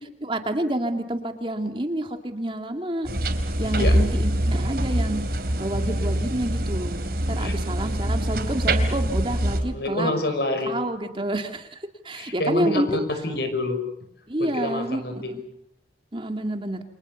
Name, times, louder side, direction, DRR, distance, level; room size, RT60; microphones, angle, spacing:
voice 1, 0.2-3.1 3.6-5.2 5.6-7.0 7.3-10.1 10.7-13.0 14.3-15.4 16.1-16.8, right 1 dB, 30° right, 6 dB, 2.3 m, -28 dB
sound 1, 3.0-9.6, right 1 dB, 55° right, 3.8 m, -24 dB
voice 2, 9.6-10.7 12.1-12.8 13.1-13.8 14.4-15.3, left 1 dB, 60° left, 8 dB, 5.9 m, -27 dB
29.0 x 26.5 x 7.0 m, 0.73 s
head